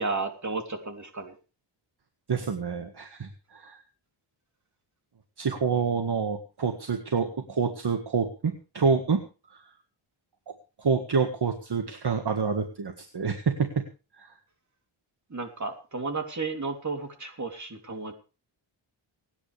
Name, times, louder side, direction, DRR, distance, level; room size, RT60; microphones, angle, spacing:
voice 1, 0.0-1.3 15.3-18.1, right 3 dB, 35° right, 4 dB, 3.2 m, -33 dB
voice 2, 2.3-3.8 5.4-9.2 9.5-9.6 10.8-13.8 14.1-14.3, right 5 dB, 50° right, 5 dB, 1.9 m, -27 dB
29.0 x 9.9 x 3.4 m, 0.34 s
wide cardioid pair, 135°, 50 cm